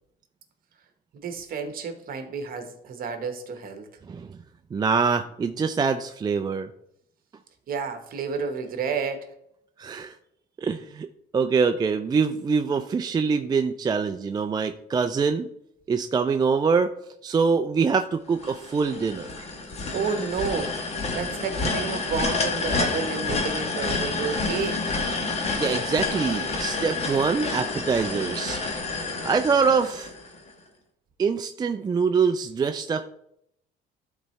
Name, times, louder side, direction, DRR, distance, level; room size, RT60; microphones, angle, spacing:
voice 1, 1.1-3.9 7.7-9.3 19.9-20.7 21.1-24.8, right 5 dB, 45° right, 6 dB, 1.3 m, -31 dB
voice 2, 4.7-6.7 9.8-10.1 10.6-11.1 11.3-15.5 15.9-16.9 17.2-19.3 25.6-28.6 29.2-30.1 31.2-33.1, right 5 dB, 20° right, 7 dB, 0.4 m, -24 dB
sound 1, 18.4-30.5, left 3 dB, 35° left, 1.3 m, -29 dB
12.5 x 4.1 x 3.2 m, 0.74 s
cardioid pair, 115°, 20 cm